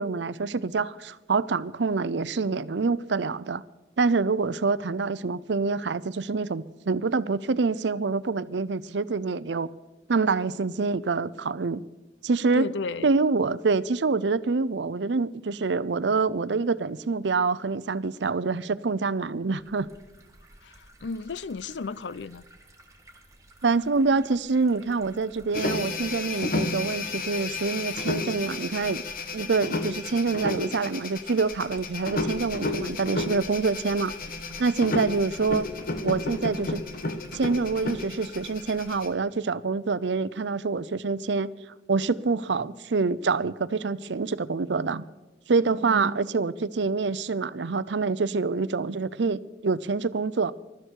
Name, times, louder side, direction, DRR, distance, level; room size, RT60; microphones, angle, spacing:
voice 1, 0.0-3.6 4.0-9.7 10.1-11.8 12.2-12.7 13.0-19.9 23.6-29.0 29.3-34.1 34.6-35.6 36.0-36.8 37.3-41.5 41.9-45.0 45.5-50.5, right 4 dB, 80° right, 0.6 m, -26 dB
voice 2, 12.5-13.1 20.6-22.4, left 4 dB, 80° left, 0.5 m, -34 dB
sound 1, 19.5-39.0, right 1 dB, 20° right, 1.8 m, -51 dB
sound 2, 25.5-39.1, left 3 dB, 55° left, 1.3 m, -32 dB
22.0 x 12.5 x 4.6 m
head